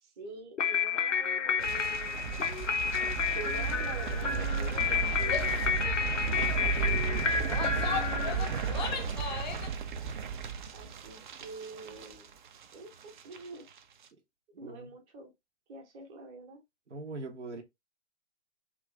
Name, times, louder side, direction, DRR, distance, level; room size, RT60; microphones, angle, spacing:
voice 1, 0.0-2.5 3.2-5.7 6.5-7.6 8.1-9.1 10.7-12.3 12.7-13.7 14.6-15.3 15.7-16.6, right 3 dB, 25° right, 0.9 m, -46 dB
sound 1, 0.6-8.9, left 6 dB, 90° left, 0.6 m, -31 dB
sound 2, 1.6-12.7 13.0-13.4 13.7-13.8, right 6 dB, 45° right, 0.5 m, -34 dB
Female speech woman speaking / Yell, 5.2-5.5 5.8-6.0 6.3-6.6 7.3-9.7, left 6 dB, 40° left, 0.5 m, -37 dB
voice 2, 14.5-14.9 16.9-17.6, right 2 dB, 80° right, 0.9 m, -42 dB
3.0 x 2.4 x 3.2 m
figure-of-eight pair, 125°, 35 cm